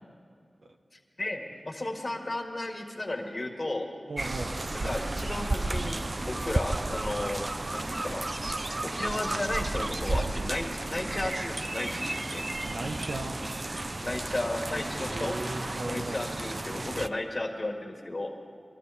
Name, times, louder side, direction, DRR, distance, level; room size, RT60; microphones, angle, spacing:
voice 1, 1.2-3.9 4.8-8.3 8.8-12.4 14.0-15.3 15.8-18.4, left 2 dB, 40° left, 3 dB, 1.8 m, -34 dB
voice 2, 4.1-4.5 12.6-13.4 15.0-16.2, right 2 dB, 80° right, 3 dB, 1.1 m, -36 dB
sound 1, 4.2-17.1, right 2 dB, 45° right, 0.4 m, -33 dB
23.0 x 12.5 x 4.2 m, 2.2 s
cardioid pair, 45°, 0 cm